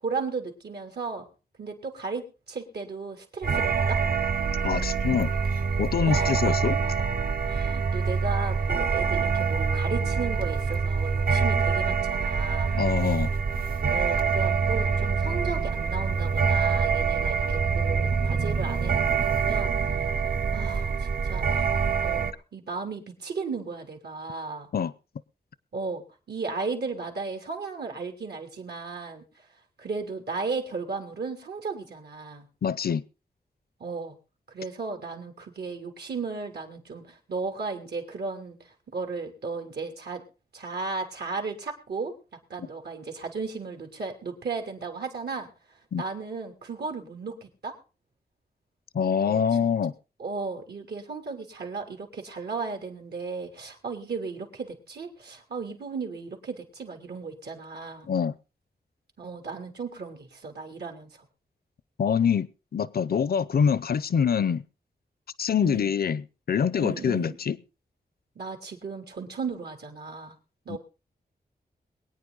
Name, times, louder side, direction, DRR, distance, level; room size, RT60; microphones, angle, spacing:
voice 1, 0.0-1.3 1.6-4.0 6.1-6.5 7.4-12.8 13.9-19.7 20.5-21.6 22.0-24.7 25.7-29.2 29.8-32.5 33.8-34.2 34.5-38.6 38.9-40.2 40.5-42.1 42.5-45.5 46.0-47.8 49.2-49.4 50.2-58.1 59.2-61.3 65.6-65.9 66.8-67.4 68.3-70.3 70.6-70.8, right 4 dB, 80° right, 3.2 m, -35 dB
sound 1, 3.4-22.3, right 5 dB, 60° right, 0.9 m, -25 dB
voice 2, 4.6-5.4 5.8-6.8 12.7-13.3 24.7-24.9 32.6-33.0 45.9-46.0 48.9-49.9 58.1-58.4 62.0-64.6 65.4-67.6 70.7-70.8, left 7 dB, 70° left, 0.6 m, -25 dB
22.5 x 9.4 x 3.9 m
wide cardioid pair, 90°, 17 cm